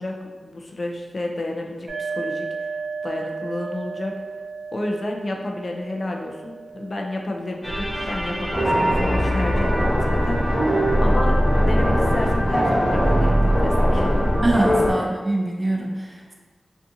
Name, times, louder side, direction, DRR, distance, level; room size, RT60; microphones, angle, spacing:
voice 1, 0.0-2.7 3.0-4.2 4.7-10.7 11.0-14.4 14.9-15.0, left 2 dB, 45° left, 1 dB, 0.3 m, -31 dB
sound 1, 1.9-9.4, right 4 dB, 90° right, 0.7 m, -35 dB
sound 2, 7.6-14.9, equal, 5° right, 1.0 m, -20 dB
voice 2, 14.4-16.3, right 1 dB, 30° right, -1 dB, 0.4 m, -24 dB
2.5 x 2.4 x 2.6 m, 1.4 s
wide cardioid pair, 80°, 0 cm